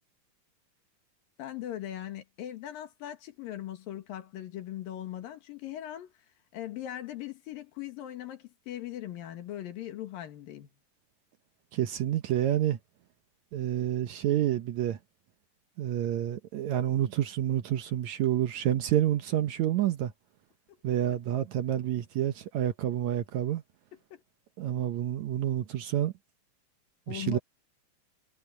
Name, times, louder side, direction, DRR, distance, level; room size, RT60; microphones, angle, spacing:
voice 1, 1.4-6.1 6.5-10.7 24.1-24.2 27.1-27.4, left 12 dB, 85° left, 3.5 m, -39 dB
voice 2, 11.7-12.8 13.5-15.0 15.8-20.1 20.8-23.6 24.6-26.1 27.1-27.4, right 12 dB, 70° right, 1.9 m, -28 dB
omnidirectional pair, 4.0 m